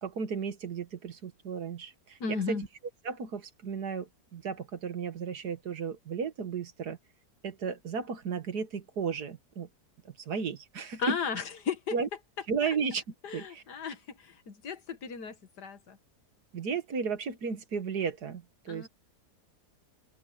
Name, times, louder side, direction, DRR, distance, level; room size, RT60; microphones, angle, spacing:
voice 1, 0.0-2.7 3.0-7.0 7.4-9.7 10.0-11.2 11.9-12.1 12.5-13.0 13.3-13.6 16.5-18.9, right 6 dB, 75° right, 2.1 m, -34 dB
voice 2, 2.2-2.6 11.0-12.0 13.2-16.0 18.7-18.9, left 5 dB, 85° left, 2.3 m, -35 dB
omnidirectional pair, 1.7 m